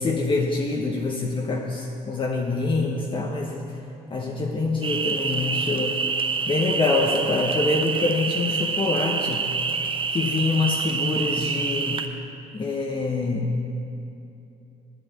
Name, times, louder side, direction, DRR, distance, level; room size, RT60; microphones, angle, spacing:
voice 1, 0.0-3.7 4.1-6.0 6.5-9.5 10.1-12.1 12.5-13.7, left 3 dB, 30° left, 0 dB, 1.0 m, -25 dB
sound 1, 4.8-12.1, right 5 dB, 30° right, 0.8 m, -27 dB
9.3 x 8.2 x 9.0 m, 2.8 s
cardioid pair, 110°, 17 cm